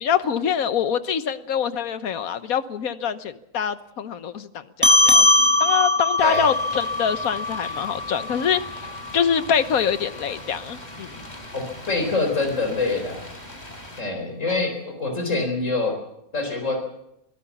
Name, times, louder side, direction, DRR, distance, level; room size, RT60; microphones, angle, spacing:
voice 1, 0.0-5.3 5.6-8.6 9.1-11.2, left 8 dB, 90° left, 13 dB, 1.5 m, -25 dB
sound 1, 4.8-9.6, left 2 dB, 10° right, 1.1 m, -21 dB
sound 2, 6.2-14.0, left 1 dB, 30° left, 3.6 m, -41 dB
voice 2, 11.5-13.3 14.0-15.9 16.3-16.9, left 3 dB, 60° left, 4 dB, 4.5 m, -25 dB
24.5 x 17.0 x 7.1 m, 0.81 s
omnidirectional pair, 1.5 m